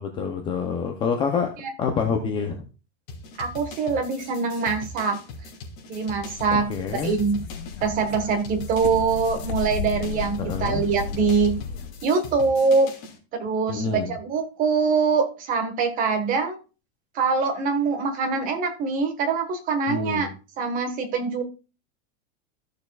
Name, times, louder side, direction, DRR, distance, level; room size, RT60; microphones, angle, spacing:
voice 1, 0.0-2.6 6.5-7.1 10.4-10.8 13.7-14.1 19.9-20.3, left 6 dB, 15° left, 4 dB, 0.6 m, -27 dB
sound 1, 3.1-13.2, left 3 dB, 45° left, 2.7 m, -41 dB
voice 2, 3.4-5.2 5.9-6.7 7.0-7.4 7.8-11.6 12.0-12.9 13.3-16.6 17.1-20.3 20.6-21.4, right 5 dB, 25° right, 6 dB, 1.5 m, -24 dB
sound 2, 6.1-12.0, left 6 dB, 70° left, 0.8 m, -34 dB
14.5 x 6.6 x 2.3 m, 0.33 s
supercardioid pair, 175°, 33 cm